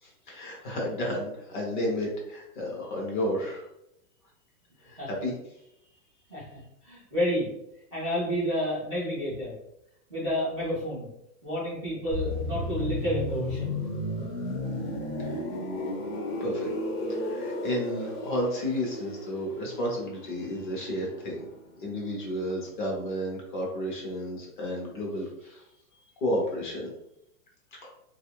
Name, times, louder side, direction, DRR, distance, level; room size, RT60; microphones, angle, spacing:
voice 1, 0.0-3.7 4.8-5.3 15.2-15.3 16.4-16.7 17.1-21.4 21.8-25.3 26.2-26.9 27.8-27.9, equal, 30° left, -2 dB, 0.7 m, -32 dB
voice 2, 6.8-7.5 7.9-9.5 10.1-11.1 11.4-13.8, equal, 25° right, -12 dB, 0.3 m, -30 dB
sound 1, 12.1-21.8 22.0-22.3, left 2 dB, 50° left, 1.0 m, -34 dB
2.7 x 2.4 x 2.9 m, 0.81 s
hypercardioid pair, 160°, 49 cm